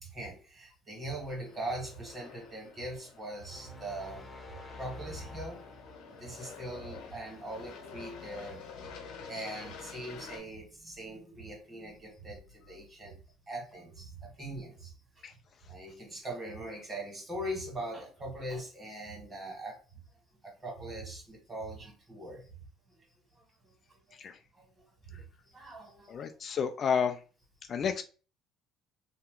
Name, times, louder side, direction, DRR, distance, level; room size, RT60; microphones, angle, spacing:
voice 1, 0.0-4.3 4.8-5.6 6.1-8.6 9.3-13.1 13.5-15.2 15.7-19.8 20.4-22.5 24.5-24.7 25.0-26.2, right 1 dB, 25° right, 0 dB, 1.7 m, -41 dB
Aircraft, 1.2-10.4, left 5 dB, 75° left, 0.9 m, -49 dB
sound 1, 3.5-6.2, left 2 dB, 15° left, 0.8 m, -47 dB
voice 2, 26.1-27.2 27.7-28.0, left 7 dB, 40° left, 7 dB, 0.3 m, -31 dB
2.8 x 2.2 x 3.7 m, 0.36 s
cardioid pair, 105°, 0 cm